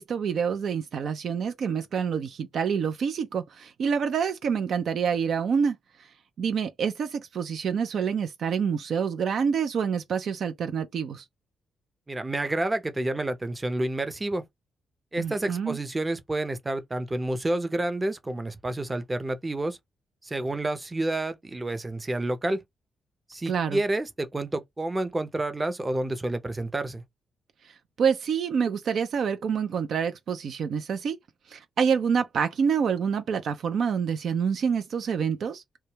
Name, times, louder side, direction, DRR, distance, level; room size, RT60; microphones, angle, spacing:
voice 1, 0.0-6.1 6.4-11.2 15.2-15.8 23.5-23.8 28.0-31.2 31.5-35.6, right 6 dB, 65° right, 0.4 m, -27 dB
voice 2, 12.1-14.4 15.1-19.8 20.2-22.6 23.3-27.0, right 2 dB, 25° right, 0.6 m, -29 dB
2.2 x 2.1 x 3.1 m
supercardioid pair, 50°, 0 cm